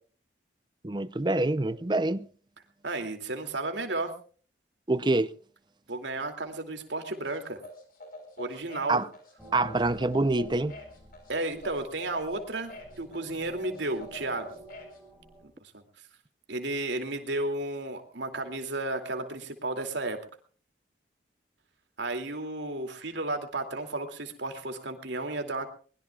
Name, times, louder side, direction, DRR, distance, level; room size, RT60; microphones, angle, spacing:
voice 1, 0.8-2.2 4.9-5.3 8.9-9.1 9.5-10.8, right 2 dB, 25° right, 0.6 m, -26 dB
voice 2, 2.8-4.1 5.9-7.6 8.4-9.0 11.3-14.5 15.6-15.8 16.5-20.2 22.0-25.7, right 2 dB, 75° right, 2.6 m, -33 dB
sound 1, 7.1-15.0, left 1 dB, 50° left, 4.4 m, -46 dB
sound 2, 9.4-15.5, right 1 dB, ahead, 4.7 m, -51 dB
23.0 x 21.0 x 2.4 m
head